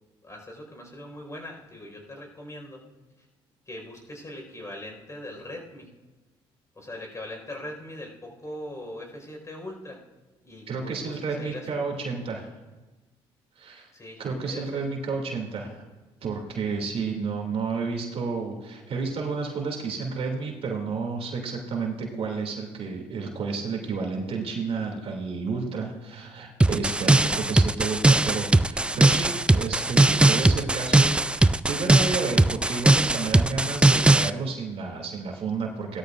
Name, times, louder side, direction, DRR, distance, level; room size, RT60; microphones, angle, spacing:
voice 1, 0.2-2.8 3.7-5.9 6.7-10.0 10.4-12.0 13.9-14.8 27.2-27.3, left 1 dB, 25° left, 1 dB, 4.7 m, -41 dB
voice 2, 10.7-12.4 13.6-13.9 14.2-15.8 16.2-36.0, right 4 dB, 60° right, 1 dB, 2.6 m, -31 dB
sound 1, 26.6-34.3, right 2 dB, 10° right, 0.3 m, -19 dB
17.0 x 12.5 x 2.5 m, 1.2 s
supercardioid pair, 65°, 11 cm